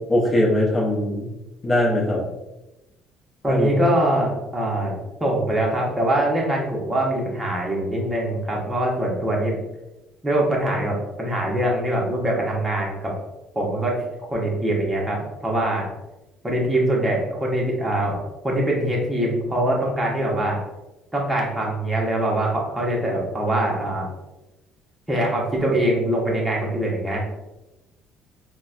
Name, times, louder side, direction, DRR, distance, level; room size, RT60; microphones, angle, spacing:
voice 1, 0.1-1.3 1.6-2.2 3.5-3.7, left 1 dB, 30° left, -4 dB, 0.8 m, -20 dB
voice 2, 3.4-9.6 10.2-13.1 13.5-14.0 14.3-15.9 16.4-20.6 21.1-24.1 25.1-27.2, right 1 dB, 10° right, -3 dB, 0.9 m, -23 dB
3.9 x 2.1 x 2.4 m, 0.99 s
cardioid pair, 105°, 0 cm